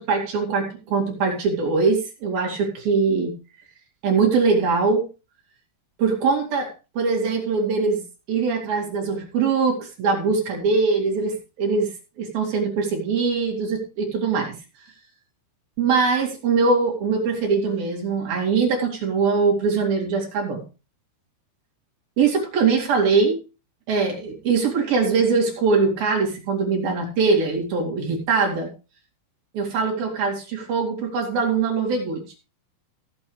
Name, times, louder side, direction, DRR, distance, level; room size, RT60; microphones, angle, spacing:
voice 1, 0.0-3.3 4.0-5.1 6.0-8.0 8.3-11.9 12.2-14.6 15.8-20.6 22.2-23.4 23.9-28.7 29.5-32.2, right 4 dB, 50° right, 0 dB, 4.2 m, -22 dB
17.0 x 8.6 x 3.3 m, 0.31 s
omnidirectional pair, 5.9 m